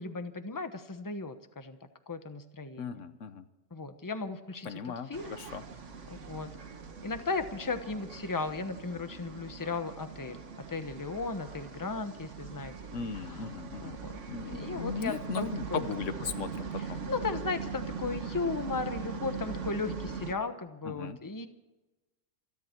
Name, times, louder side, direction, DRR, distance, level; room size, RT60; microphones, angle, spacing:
voice 1, 0.0-1.8 2.1-3.0 3.7-5.4 6.1-6.5 7.0-10.4 10.7-12.7 13.1-13.5 13.8-14.2 14.4-15.8 16.8-21.5, left 4 dB, 15° left, 9 dB, 1.0 m, -36 dB
voice 2, 2.8-3.4 4.6-5.6 12.9-14.0 14.3-17.0 20.8-21.2, left 5 dB, 90° left, 11 dB, 1.3 m, -37 dB
sound 1, 5.1-20.3, right 5 dB, 75° right, 1.6 m, -41 dB
27.0 x 11.0 x 4.5 m, 1.1 s
omnidirectional pair, 1.3 m